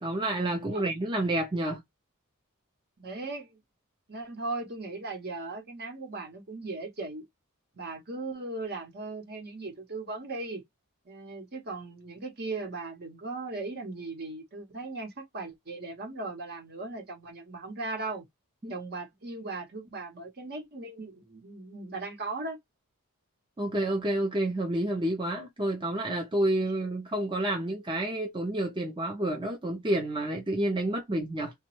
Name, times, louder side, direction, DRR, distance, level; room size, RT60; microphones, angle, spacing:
voice 1, 0.0-1.8 18.6-18.7 23.6-31.5, right 1 dB, 20° right, 0.6 m, -29 dB
voice 2, 3.0-3.6 4.1-7.3 7.7-10.6 11.1-18.3 18.7-22.6, right 3 dB, 45° right, 0.9 m, -38 dB
2.9 x 2.2 x 3.0 m
head